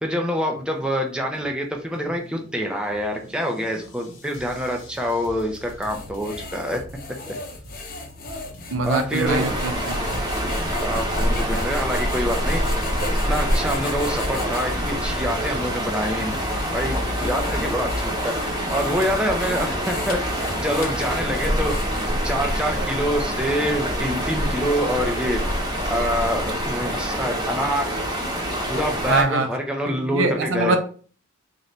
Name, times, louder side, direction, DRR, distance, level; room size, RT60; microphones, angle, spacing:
voice 1, 0.0-6.8 7.3-7.4 8.8-9.4 10.7-12.6 13.3-16.3 16.7-18.3 18.7-20.2 20.6-21.7 22.2-25.4 25.9-27.9 28.7-30.8, equal, 5° right, 2 dB, 0.5 m, -26 dB
sound 1, 0.5-17.1, left 1 dB, 80° left, 1.1 m, -44 dB
sound 2, 5.5-14.7 15.3-15.4 16.1-22.3, left 2 dB, 45° left, 0.7 m, -37 dB
voice 2, 8.7-10.2 29.1-29.5 29.9-30.8, right 3 dB, 70° right, 4 dB, 0.6 m, -23 dB
sound 3, 9.3-29.2, equal, 20° right, 0.9 m, -26 dB
4.0 x 2.6 x 3.2 m, 0.41 s
head